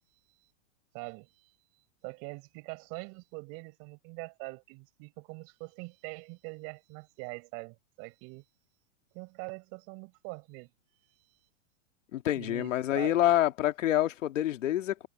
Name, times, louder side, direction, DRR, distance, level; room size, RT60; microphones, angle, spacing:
voice 1, 0.9-1.5 2.0-8.4 9.1-10.7 11.0-11.2 12.3-13.3, right 29 dB, 40° right, 5.0 m, -43 dB
voice 2, 12.1-15.1, left 13 dB, 85° left, 1.9 m, -27 dB
supercardioid pair, 155°, 37 cm